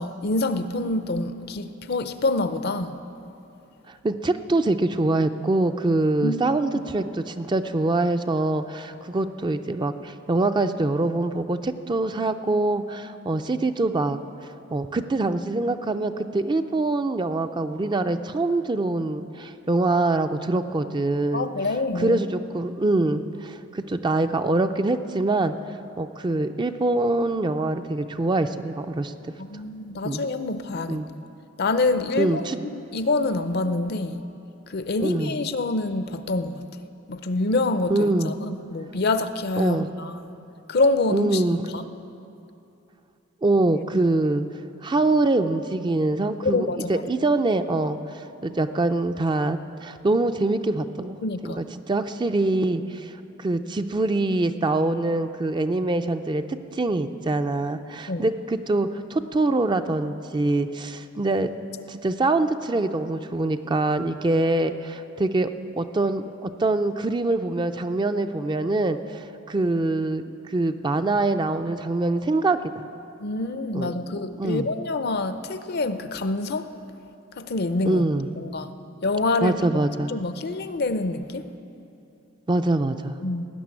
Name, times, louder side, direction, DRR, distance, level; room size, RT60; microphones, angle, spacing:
voice 1, 0.0-3.0 6.2-6.8 21.3-22.2 29.4-31.0 31.6-32.5 32.9-34.2 34.7-36.6 37.1-40.3 40.7-41.4 41.7-41.8 46.4-46.9 51.2-51.6 58.1-58.2 73.2-76.7 77.4-78.1 78.3-78.7 79.0-79.7 80.1-81.5 83.2-83.5, left 2 dB, 55° left, 11 dB, 0.6 m, -26 dB
voice 2, 3.9-14.2 14.7-21.5 22.0-25.5 26.0-29.1 30.0-30.2 30.9-31.1 32.2-32.6 35.0-35.3 37.9-38.3 39.6-39.9 41.1-41.6 43.4-44.4 44.8-51.2 51.4-53.1 53.4-61.5 61.9-65.5 65.8-72.8 73.7-74.7 77.9-78.3 79.4-80.1 82.5-83.2, right 2 dB, 25° right, 9 dB, 0.4 m, -24 dB
17.5 x 6.9 x 9.6 m, 2.8 s
head